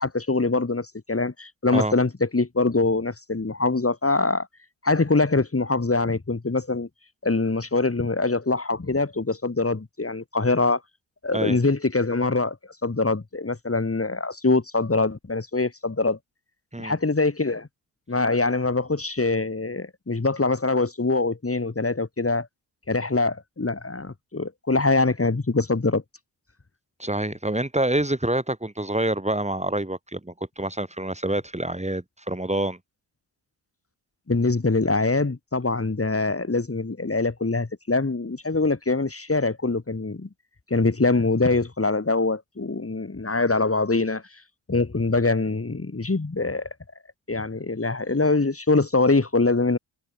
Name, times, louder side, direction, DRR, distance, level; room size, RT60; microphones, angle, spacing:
voice 1, 0.0-4.5 4.8-6.9 7.2-10.8 11.2-12.6 12.8-16.2 16.8-17.7 18.1-22.5 22.9-26.0 34.3-40.3 40.7-44.2 44.7-46.7 47.3-49.8, left 3 dB, 25° left, 6.0 m, -23 dB
voice 2, 27.0-32.8, right 1 dB, 15° right, 7.7 m, -27 dB
supercardioid pair, 50°, 49 cm